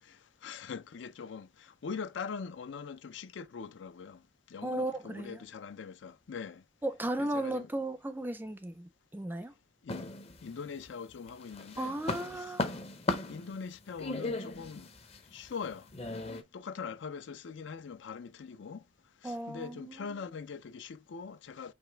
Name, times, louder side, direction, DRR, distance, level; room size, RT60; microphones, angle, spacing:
voice 1, 0.0-6.6 7.2-7.7 9.8-10.1 10.4-12.0 12.4-12.5 13.3-14.9 15.3-18.8 19.2-21.7, left 5 dB, 85° left, 0.4 m, -42 dB
voice 2, 4.6-5.4 6.8-9.5 11.8-12.7 19.2-20.1, right 1 dB, 10° right, 0.4 m, -35 dB
sound 1, 9.9-10.9 11.3-16.4, left 2 dB, 35° left, 0.6 m, -37 dB
5.1 x 2.9 x 3.3 m
head